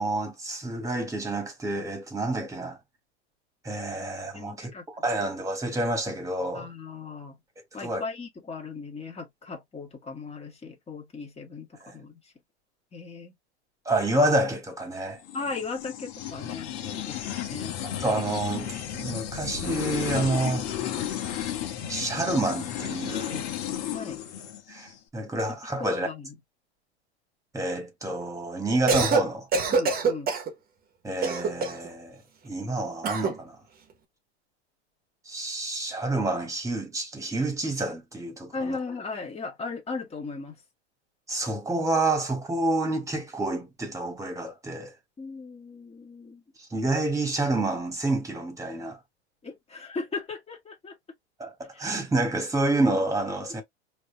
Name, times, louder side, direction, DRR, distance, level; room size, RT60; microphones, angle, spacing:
voice 1, 0.0-2.8 3.6-6.7 7.8-8.0 11.8-11.9 13.9-15.2 17.8-20.7 21.9-23.5 24.7-24.9 25.1-26.1 27.5-29.5 31.0-33.6 35.3-38.8 41.3-44.9 46.7-49.0 51.4-53.6, right 2 dB, 10° right, 1.9 m, -28 dB
voice 2, 4.3-5.1 6.5-7.4 7.7-12.2 12.9-13.3 15.3-17.8 23.9-24.2 25.8-26.4 29.7-30.3 38.5-40.6 45.2-46.4 49.4-50.9 51.7-51.9, left 4 dB, 20° left, 1.8 m, -37 dB
sound 1, 15.2-24.9, left 10 dB, 55° left, 1.4 m, -33 dB
Cough, 28.7-29.3 29.5-30.5 31.2-31.9 33.0-33.4, right 4 dB, 25° right, 1.3 m, -25 dB
5.1 x 3.0 x 2.2 m
hypercardioid pair, 110°, 34 cm